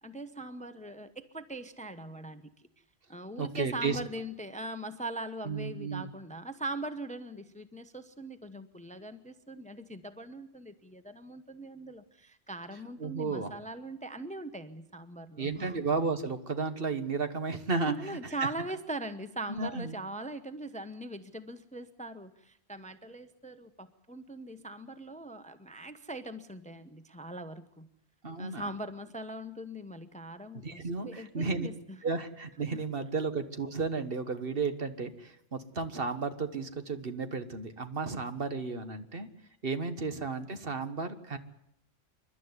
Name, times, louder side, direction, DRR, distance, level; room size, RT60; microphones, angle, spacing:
voice 1, 0.0-2.4 3.1-15.8 17.9-27.9 28.4-32.0 32.7-32.8, right 2 dB, 5° left, 10 dB, 0.9 m, -41 dB
voice 2, 3.4-4.0 5.4-6.1 13.0-13.5 15.4-18.3 19.5-19.9 28.2-28.7 30.5-31.7 32.0-39.3 39.6-41.4, right 4 dB, 55° right, 9 dB, 1.6 m, -33 dB
28.0 x 12.0 x 9.7 m, 0.76 s
omnidirectional pair, 1.1 m